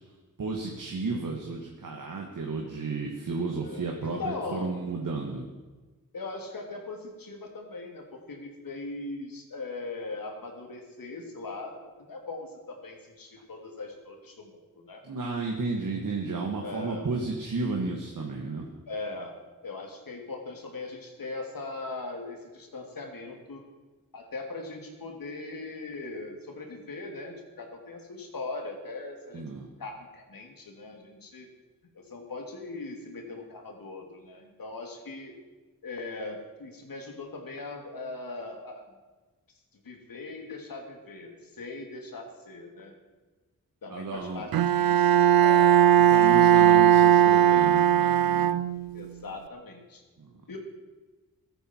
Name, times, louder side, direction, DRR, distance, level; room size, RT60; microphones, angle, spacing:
voice 1, 0.4-5.5 15.0-18.7 29.3-29.7 43.9-44.4 46.1-48.5 50.2-50.3, right 3 dB, 65° right, 1 dB, 1.9 m, -33 dB
voice 2, 3.6-4.8 6.1-15.0 16.6-17.1 18.9-19.3 19.6-23.6 24.1-29.4 29.8-31.5 31.9-35.3 35.8-38.8 39.7-42.9 43.8-45.8 48.9-50.0 50.5-50.6, left 3 dB, 75° left, 2 dB, 2.9 m, -40 dB
Bowed string instrument, 44.5-49.1, right 10 dB, 90° right, 0.5 m, -19 dB
17.0 x 13.5 x 4.6 m, 1.3 s
cardioid pair, 70°, 34 cm